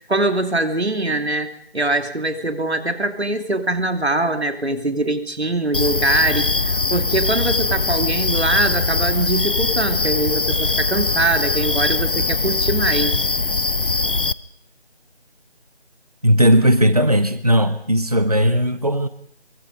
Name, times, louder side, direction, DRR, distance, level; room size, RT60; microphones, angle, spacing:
voice 1, 0.0-13.2, right 2 dB, 75° right, 6 dB, 2.9 m, -22 dB
sound 1, 5.7-14.3, left 3 dB, 55° left, 0.8 m, -21 dB
voice 2, 16.2-19.1, equal, 35° right, 12 dB, 1.0 m, -17 dB
24.0 x 23.5 x 5.1 m, 0.64 s
figure-of-eight pair, 180°, 32 cm